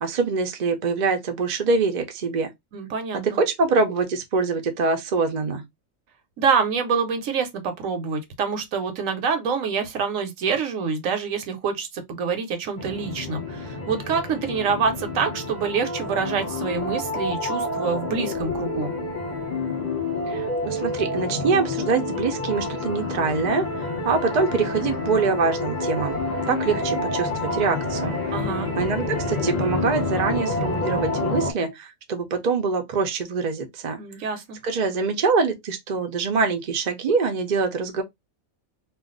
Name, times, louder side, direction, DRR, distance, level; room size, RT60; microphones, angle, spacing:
voice 1, 0.0-2.5 3.2-5.6 20.3-26.2 26.5-28.2 28.8-34.0 34.6-38.0, right 4 dB, 50° right, 0.6 m, -24 dB
voice 2, 2.7-3.4 6.4-18.9 28.3-28.7 34.0-34.6, right 5 dB, 75° right, 1.1 m, -26 dB
sound 1, 12.8-31.5, left 2 dB, 30° left, 0.9 m, -28 dB
2.5 x 2.3 x 3.7 m
omnidirectional pair, 1.4 m